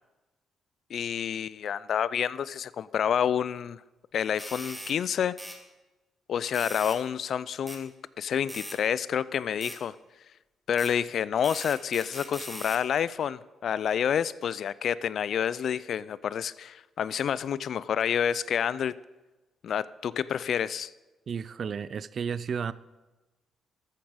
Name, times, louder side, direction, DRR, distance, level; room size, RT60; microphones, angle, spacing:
voice 1, 0.9-3.8 4.1-5.3 6.3-7.9 8.2-9.9 10.7-19.0 19.6-20.9, left 8 dB, 60° left, 19 dB, 0.4 m, -28 dB
sound 1, 4.4-5.0 5.4-5.6 6.5-7.0 7.7-7.8 8.5-8.8 9.6-9.8 10.8-10.9 11.4-12.8, right 1 dB, 10° right, 1.7 m, -40 dB
voice 2, 21.3-22.7, right 6 dB, 50° right, 18 dB, 0.5 m, -32 dB
13.5 x 8.6 x 5.1 m, 1.1 s
cardioid pair, 90°, 0 cm